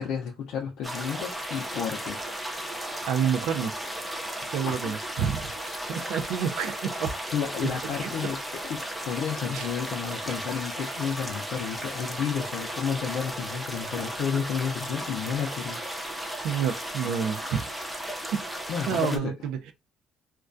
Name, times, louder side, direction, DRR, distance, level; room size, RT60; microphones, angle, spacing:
voice 1, 0.0-2.2 4.7-4.9 7.3-8.4 8.7-15.9 16.2-16.5 18.7-19.3, left 7 dB, 75° left, 0.4 m, -31 dB
sound 1, 0.8-19.2, right 1 dB, 5° right, 0.4 m, -35 dB
voice 2, 3.0-3.7 4.2-7.1 9.5-9.7 10.1-10.2 16.4-17.9 18.9-19.7, right 7 dB, 90° right, 0.4 m, -29 dB
2.3 x 2.1 x 2.5 m
cardioid pair, 150°, 0 cm